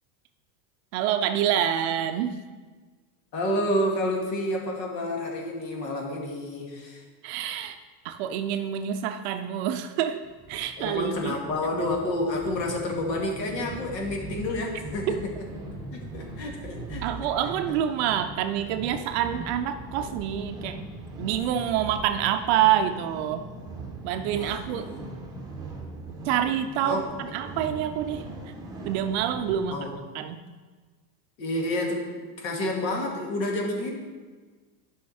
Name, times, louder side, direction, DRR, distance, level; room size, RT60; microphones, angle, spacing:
voice 1, 0.9-2.3 7.2-7.8 8.0-10.2 10.5-11.3 17.0-20.8 21.2-23.4 24.0-24.9 26.3-27.0 27.3-28.2 28.9-29.9 30.1-30.4, right 10 dB, 45° right, 8 dB, 0.5 m, -27 dB
voice 2, 3.3-7.1 10.8-15.3 15.9-17.3 17.7-17.8 21.6-21.7 24.3-25.0 26.8-27.1 29.7-30.2 31.4-33.9, left 1 dB, 75° left, 0 dB, 2.4 m, -30 dB
sound 1, 10.2-29.7, right 2 dB, 10° right, 1.1 m, -40 dB
10.5 x 5.7 x 4.3 m, 1.4 s
supercardioid pair, 145°, 50 cm